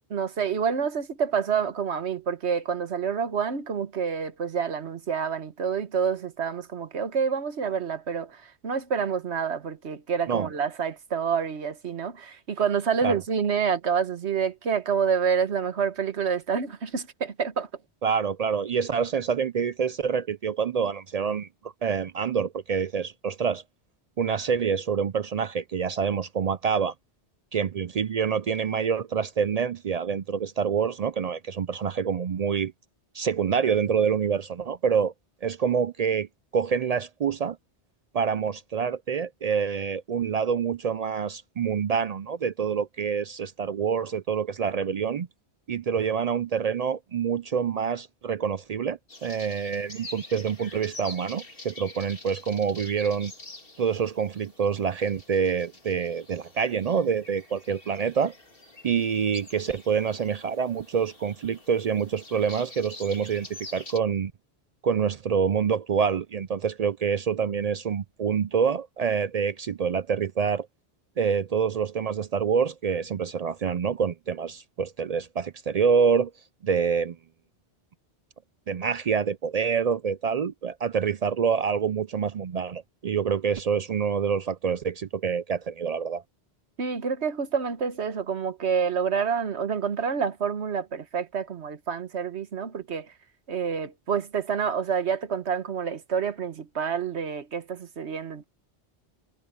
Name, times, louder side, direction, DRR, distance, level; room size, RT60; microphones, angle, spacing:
voice 1, 0.1-17.7 86.8-93.1 93.5-98.4, right 6 dB, 80° right, 1.5 m, -28 dB
voice 2, 18.0-23.6 24.2-26.9 27.5-32.7 33.1-35.1 35.4-36.3 36.5-37.6 38.1-45.3 45.7-53.3 53.8-58.3 58.8-64.3 64.8-70.7 71.2-76.3 76.6-77.2 78.7-86.2, right 6 dB, 60° right, 0.4 m, -26 dB
sound 1, 49.1-64.0, left 2 dB, 55° left, 3.2 m, -46 dB
omnidirectional pair, 1.1 m